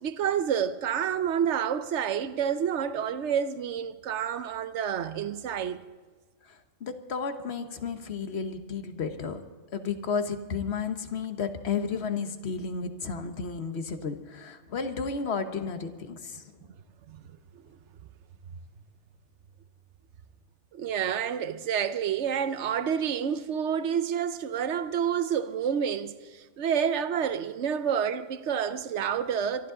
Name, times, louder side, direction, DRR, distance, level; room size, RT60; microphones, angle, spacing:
voice 1, 0.0-5.8 17.1-17.2 20.7-29.7, right 8 dB, 70° right, 1.0 m, -29 dB
voice 2, 6.8-9.4 9.7-16.4, left 5 dB, 60° left, 1.3 m, -32 dB
23.5 x 12.5 x 3.8 m
omnidirectional pair, 1.2 m